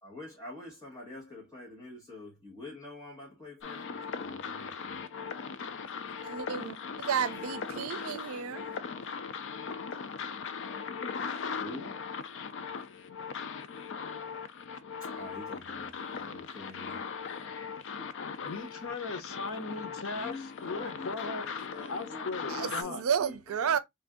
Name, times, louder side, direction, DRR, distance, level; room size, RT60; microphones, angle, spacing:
voice 1, 0.0-5.0 11.6-12.1 15.0-17.0 17.9-18.2 20.1-22.4 22.8-23.8, left 2 dB, 20° left, 1.2 m, -46 dB
sound 1, 3.6-22.8, left 6 dB, 60° left, 0.4 m, -39 dB
voice 2, 6.2-8.8 22.5-23.8, right 7 dB, 90° right, 0.4 m, -32 dB
voice 3, 18.4-21.5 21.9-23.0, left 3 dB, 80° left, 0.8 m, -38 dB
3.3 x 2.5 x 3.5 m
head